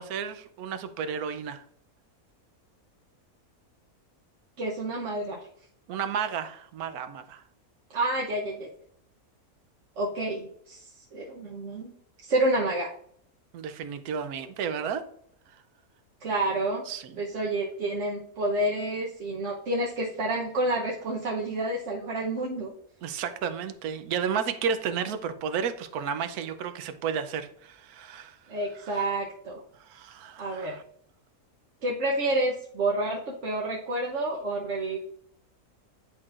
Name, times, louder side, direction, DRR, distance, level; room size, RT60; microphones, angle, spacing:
voice 1, 0.0-1.6 5.9-7.4 13.5-15.0 16.9-17.1 23.0-28.4 28.8-29.0 29.8-30.8, right 7 dB, 85° right, 9 dB, 1.1 m, -32 dB
voice 2, 4.6-5.4 7.9-8.7 10.0-11.9 12.2-12.9 16.2-16.8 17.2-22.7 28.5-29.6 30.4-30.8 31.8-35.0, right 1 dB, 60° right, -2 dB, 1.1 m, -29 dB
10.0 x 4.6 x 2.4 m, 0.67 s
omnidirectional pair, 1.5 m